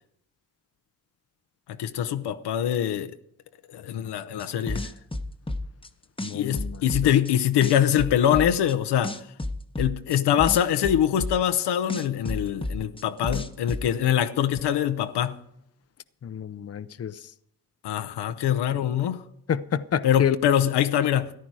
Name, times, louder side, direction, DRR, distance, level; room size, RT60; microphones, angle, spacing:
voice 1, 1.7-3.1 3.7-4.9 6.3-9.2 9.8-15.4 17.8-19.2 20.0-21.3, left 10 dB, 85° left, 0.8 m, -24 dB
sound 1, 4.4-5.9 6.2-7.3 7.6-8.7 9.0-11.6 11.9-13.8, left 1 dB, 15° left, 1.0 m, -31 dB
voice 2, 6.2-6.8 16.2-17.2 19.5-20.4, left 8 dB, 40° left, 0.7 m, -28 dB
14.0 x 10.5 x 4.7 m
cardioid pair, 60°, 39 cm